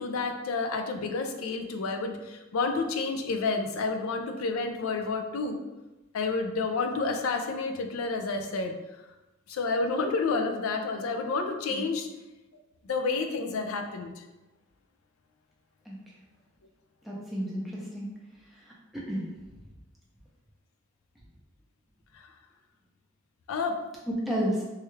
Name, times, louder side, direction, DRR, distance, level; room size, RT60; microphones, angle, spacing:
voice 1, 0.0-5.6 6.1-8.8 9.5-12.1 12.8-14.2 22.2-22.3 23.5-23.8, left 4 dB, 85° left, 5 dB, 0.4 m, -30 dB
voice 2, 17.0-18.1 18.9-19.3 24.3-24.6, equal, ahead, -6 dB, 0.6 m, -31 dB
3.2 x 2.3 x 3.1 m, 1.1 s
head